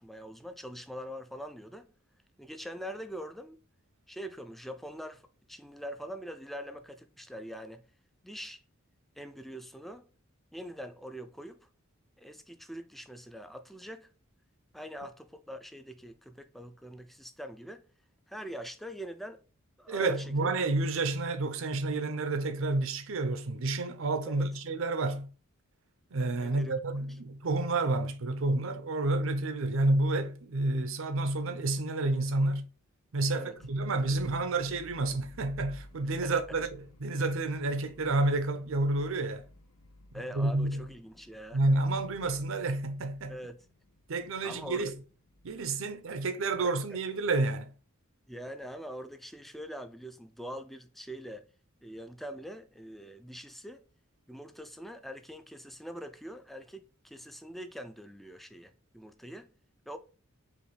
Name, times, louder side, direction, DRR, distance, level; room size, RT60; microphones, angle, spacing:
voice 1, 0.0-1.9 2.4-3.6 4.1-7.9 8.2-8.6 9.2-10.1 10.5-11.7 12.2-14.1 14.7-17.8 18.3-19.4 19.8-20.5 24.3-24.5 26.4-26.8 27.1-27.2 33.3-33.5 36.2-36.6 40.1-41.6 43.3-43.7 44.4-44.9 46.6-47.0 48.3-51.5 51.8-53.8 54.3-59.5 59.9-60.0, equal, ahead, 0.4 m, -43 dB
voice 2, 19.9-25.3 26.1-32.7 33.1-36.7 37.0-39.4 40.3-40.9 41.5-43.3 44.1-44.9 45.4-47.7, right 2 dB, 70° right, 0.6 m, -30 dB
sound 1, 33.6-46.5, left 1 dB, 85° left, 0.8 m, -54 dB
5.1 x 2.6 x 3.2 m
head